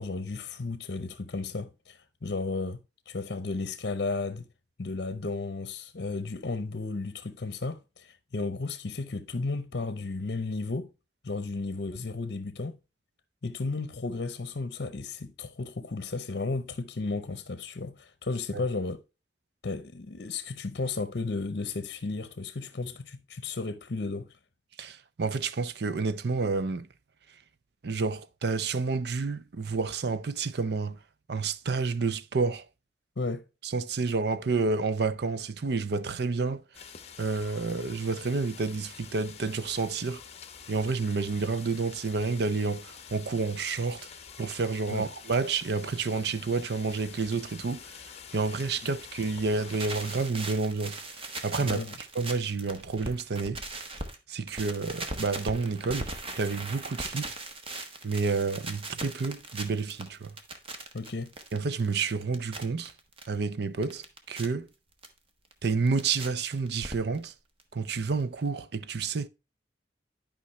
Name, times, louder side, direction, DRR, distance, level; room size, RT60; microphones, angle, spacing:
voice 1, 0.0-4.5 4.8-10.9 11.2-12.8 13.4-19.0 19.6-24.3 33.2-33.5 44.9-45.1 48.8-48.9 51.6-51.9 60.9-61.3, left 3 dB, 60° left, 0.8 m, -34 dB
voice 2, 24.8-26.9 27.8-31.0 31.3-32.6 33.6-36.6 37.2-40.2 40.7-44.0 44.4-47.9 48.3-51.0 51.4-51.8 52.1-53.6 54.3-56.1 56.4-57.2 58.0-60.3 61.5-62.9 63.3-64.7 65.6-67.3 67.7-69.3, right 4 dB, 65° right, 0.6 m, -29 dB
sound 1, 36.7-50.3, left 7 dB, 35° left, 0.9 m, -47 dB
sound 2, 49.5-54.2 54.5-63.3 63.6-64.5 65.0-65.1 65.5-66.3 66.5-67.3 67.6-67.7 67.9-68.0 68.2-68.3, right 2 dB, 30° right, 1.2 m, -39 dB
11.5 x 5.3 x 3.1 m
head